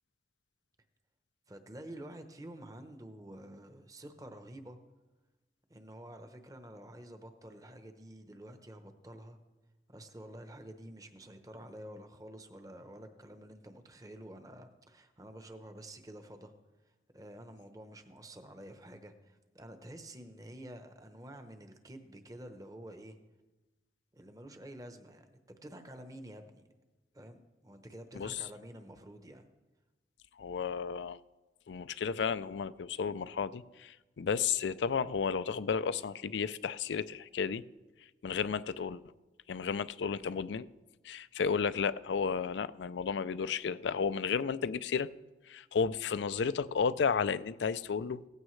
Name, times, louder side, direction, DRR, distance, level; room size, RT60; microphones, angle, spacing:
voice 1, 1.5-4.8 5.7-9.4 9.9-16.5 17.1-23.2 24.1-26.6 27.1-29.5, right 1 dB, 20° right, 0.9 m, -49 dB
voice 2, 30.4-31.2 31.7-37.6 38.2-39.0 39.5-40.7 41.0-45.1 45.5-48.2, left 6 dB, 85° left, 0.4 m, -33 dB
17.0 x 15.0 x 3.2 m
head